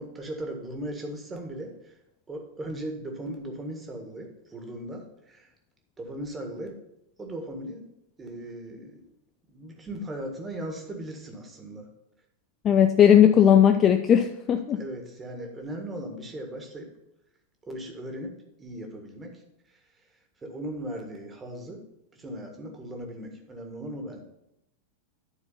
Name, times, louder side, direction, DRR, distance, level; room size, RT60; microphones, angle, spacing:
voice 1, 0.0-2.0 2.3-5.5 6.0-6.7 7.2-7.8 8.2-9.0 9.5-11.9 14.7-16.9 17.6-19.8 20.4-21.8 22.1-24.2, right 1 dB, 15° right, 3 dB, 1.6 m, -38 dB
voice 2, 12.6-14.8, left 9 dB, 25° left, 7 dB, 0.4 m, -18 dB
10.5 x 4.4 x 5.5 m, 0.82 s
figure-of-eight pair, 90°, 0 cm